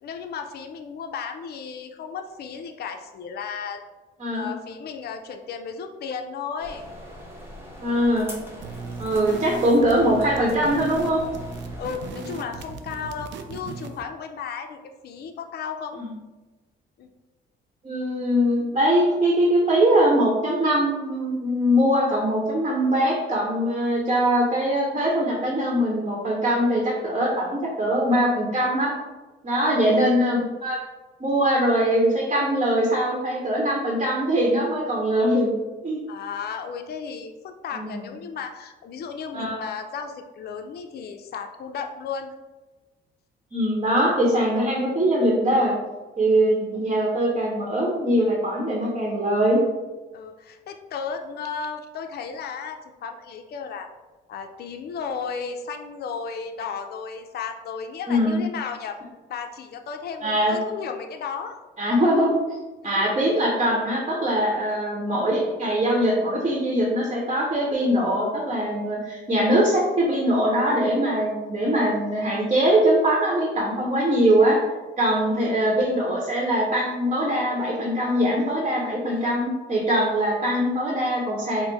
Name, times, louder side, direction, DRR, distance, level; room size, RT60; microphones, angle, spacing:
voice 1, 0.0-3.8 4.3-6.8 8.7-9.0 9.5-9.6 11.8-16.0 17.0-17.1 29.5-30.0 36.1-42.3 50.1-53.9 54.3-59.0 59.3-61.6 62.8-63.2 64.7-64.8 75.1-75.2 79.1-79.3, left 6 dB, 55° left, 5 dB, 0.5 m, -34 dB
sound 1, 6.6-12.1, equal, 10° right, 1.1 m, -42 dB
voice 2, 7.8-8.3 9.0-11.2 16.0-16.1 17.8-28.9 29.4-30.8 31.2-35.5 35.8-36.0 37.7-38.1 39.3-39.6 43.5-45.8 46.2-49.6 58.1-58.4 60.2-60.5 61.8-62.4 62.8-74.6 75.0-81.7, equal, 30° right, -2 dB, 1.0 m, -22 dB
sound 2, 8.6-14.1, right 4 dB, 65° right, 0.4 m, -37 dB
4.4 x 2.0 x 4.0 m, 1.2 s
cardioid pair, 90°, 20 cm